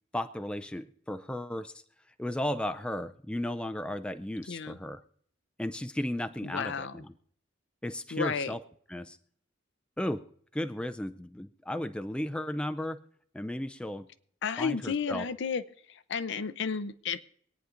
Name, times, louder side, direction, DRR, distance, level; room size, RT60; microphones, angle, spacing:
voice 1, 0.1-1.7 2.2-5.0 5.6-7.1 7.8-8.6 8.9-9.2 10.0-10.2 10.5-13.0 13.3-14.1 14.6-15.2, left 1 dB, 5° left, 9 dB, 0.4 m, -34 dB
voice 2, 4.5-4.8 6.4-6.9 8.1-8.5 14.4-15.6 15.9-17.2, left 6 dB, 65° left, 13 dB, 0.5 m, -32 dB
25.0 x 9.3 x 2.5 m, 0.63 s
head